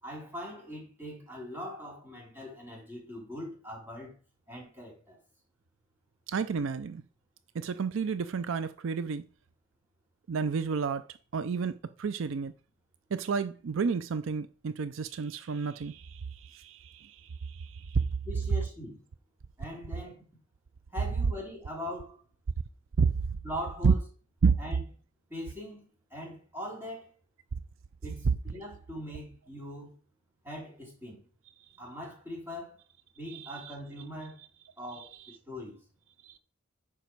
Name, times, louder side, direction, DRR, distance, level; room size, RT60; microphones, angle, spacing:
voice 1, 0.0-4.1 4.5-5.2 18.2-19.0 19.6-20.2 20.9-22.2 23.4-24.0 24.6-24.8 25.3-27.1 28.0-30.0 30.4-31.2 31.8-32.8 33.1-34.5 34.8-35.8, equal, 10° right, 3.5 m, -41 dB
voice 2, 6.3-7.0 7.5-9.2 10.3-12.5 13.1-18.0 23.0-23.1 23.8-23.9 24.4-24.6 33.3-33.7 35.0-35.1 36.2-36.4, right 5 dB, 70° right, 0.4 m, -30 dB
9.3 x 6.0 x 4.6 m
head